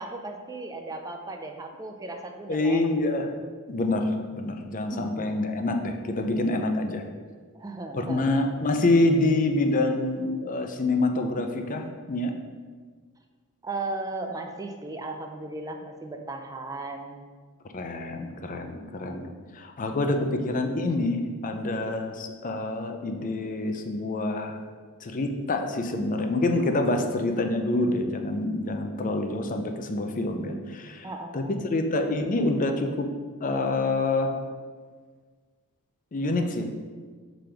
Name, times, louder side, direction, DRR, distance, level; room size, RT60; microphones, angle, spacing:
voice 1, 0.0-2.9 4.9-5.3 7.5-8.3 13.6-17.2 31.0-31.5, right 2 dB, 15° right, 4 dB, 0.4 m, -36 dB
voice 2, 2.5-3.3 3.7-7.0 7.9-12.3 17.7-24.6 25.0-31.1 31.3-33.1 33.4-34.3 36.1-36.7, left 2 dB, 35° left, 5 dB, 0.5 m, -26 dB
5.0 x 3.8 x 5.7 m, 1.5 s
head